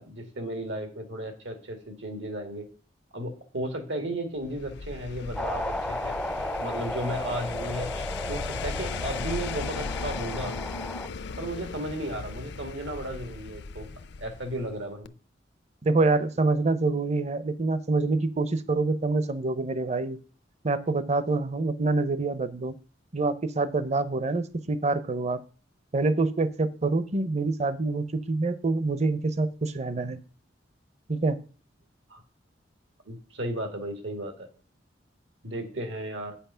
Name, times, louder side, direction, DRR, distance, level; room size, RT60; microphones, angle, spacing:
voice 1, 0.0-2.7 3.1-6.2 6.6-10.6 11.4-13.9 14.2-15.1 32.1-32.2 33.1-34.5 35.4-36.4, right 1 dB, 85° right, 6 dB, 2.2 m, -34 dB
sound 1, 4.4-14.8 15.0-15.1, left 4 dB, 65° left, 0.5 m, -37 dB
sound 2, 5.3-11.1, left 1 dB, 5° left, 0.4 m, -34 dB
voice 2, 15.8-20.2 20.6-22.8 23.1-25.4 25.9-30.2 31.1-31.4, right 3 dB, 40° right, 14 dB, 0.6 m, -26 dB
8.8 x 5.7 x 5.6 m, 0.38 s
head